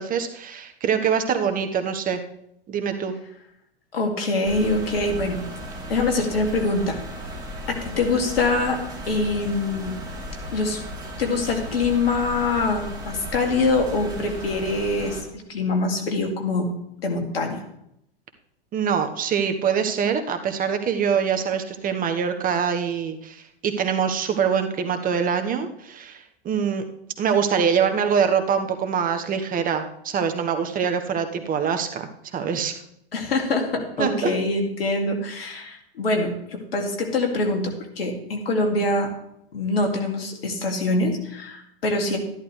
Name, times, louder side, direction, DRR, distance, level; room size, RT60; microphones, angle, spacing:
voice 1, 0.0-2.2 2.7-3.1 18.7-26.8 27.2-32.0 32.3-32.8 34.0-34.3, right 7 dB, 30° right, 7 dB, 1.2 m, -24 dB
voice 2, 3.9-5.4 5.9-7.0 7.7-8.8 9.1-9.9 10.5-10.8 11.2-16.7 17.0-17.6 33.1-39.1 39.5-42.2, left 2 dB, 80° left, 3 dB, 2.5 m, -24 dB
sound 1, 4.4-15.2, equal, 15° right, 3.1 m, -35 dB
13.5 x 11.5 x 3.3 m, 0.76 s
hypercardioid pair, 100°, 30 cm